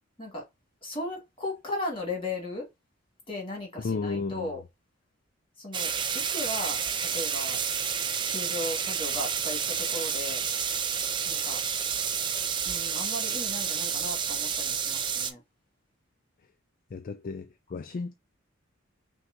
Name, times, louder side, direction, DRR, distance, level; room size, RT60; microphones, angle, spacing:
voice 1, 0.8-2.7 3.3-4.6 5.6-7.6 8.3-10.4 11.3-11.6 12.6-15.4, left 2 dB, 25° left, 2.0 m, -36 dB
voice 2, 3.8-4.5 16.9-18.1, left 4 dB, 45° left, 0.3 m, -33 dB
sound 1, 5.7-15.3, right 7 dB, 25° right, 0.4 m, -30 dB
5.8 x 2.4 x 2.6 m
head